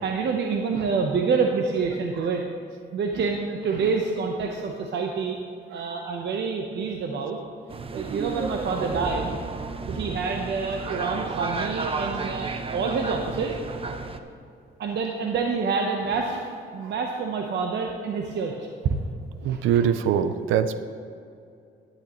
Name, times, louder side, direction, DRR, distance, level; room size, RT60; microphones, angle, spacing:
voice 1, 0.0-2.4 2.9-5.4 5.7-7.4 7.9-9.4 9.9-13.5 14.8-16.5 16.7-18.7 19.4-19.8, right 5 dB, 60° right, 2 dB, 0.8 m, -27 dB
sound 1, 7.7-14.2, right 3 dB, 30° right, 0.6 m, -32 dB
voice 2, 19.4-20.8, right 8 dB, 85° right, 11 dB, 0.5 m, -23 dB
11.5 x 11.0 x 3.0 m, 2.5 s
cardioid pair, 90°, 20 cm